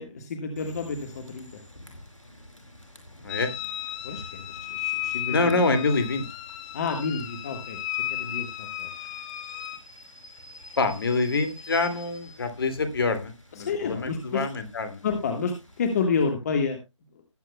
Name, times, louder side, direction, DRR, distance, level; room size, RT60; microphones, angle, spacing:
voice 1, 0.0-1.6 4.0-5.5 6.7-7.8 8.1-9.1 10.8-10.9 13.5-14.5 15.0-16.8, left 5 dB, 30° left, 5 dB, 1.6 m, -29 dB
Rain / Train, 0.6-16.0, left 1 dB, 80° left, 4.7 m, -49 dB
sound 1, 3.3-9.8, left 15 dB, 15° left, 0.7 m, -34 dB
voice 2, 5.3-6.2 10.8-15.0, left 3 dB, 45° left, 9 dB, 2.3 m, -26 dB
19.0 x 8.9 x 2.2 m, 0.23 s
figure-of-eight pair, 150°, 16 cm